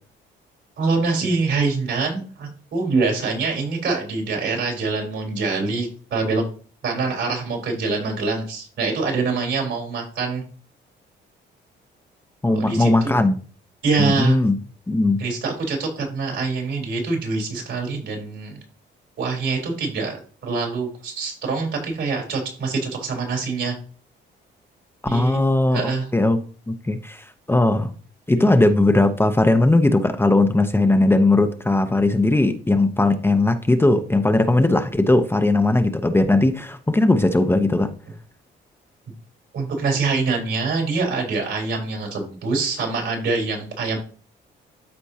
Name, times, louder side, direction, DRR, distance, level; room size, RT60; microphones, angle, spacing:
voice 1, 0.8-6.4 6.8-10.4 12.5-13.3 13.8-14.4 15.2-18.6 19.2-23.7 25.1-25.4 25.7-26.1 28.4-28.5 39.5-44.0, right 4 dB, 70° right, 1 dB, 3.9 m, -25 dB
voice 2, 12.4-13.3 14.0-14.6 14.9-15.2 25.1-27.9 28.3-37.9, left 2 dB, 10° left, 7 dB, 0.8 m, -18 dB
13.0 x 4.5 x 2.8 m, 0.40 s
cardioid pair, 90°, 20 cm